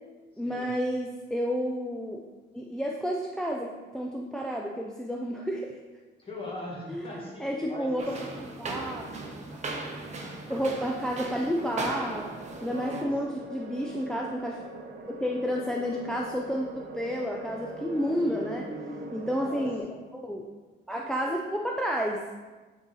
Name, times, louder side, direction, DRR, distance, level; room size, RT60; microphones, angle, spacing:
voice 1, 0.4-2.2 2.5-5.8 6.9-8.2 8.6-9.0 10.5-12.3 12.6-14.6 15.1-18.7 19.1-20.4 20.9-22.3, equal, 5° left, -1 dB, 0.4 m, -31 dB
voice 2, 6.2-8.1 10.0-10.3 12.6-13.1 17.9-19.7, left 1 dB, 30° left, -3 dB, 1.8 m, -41 dB
sound 1, 8.0-13.0, right 3 dB, 40° right, 0.9 m, -37 dB
sound 2, 11.4-19.8, right 2 dB, 70° right, 0.9 m, -42 dB
8.9 x 3.9 x 4.0 m, 1.3 s
wide cardioid pair, 155°, 19 cm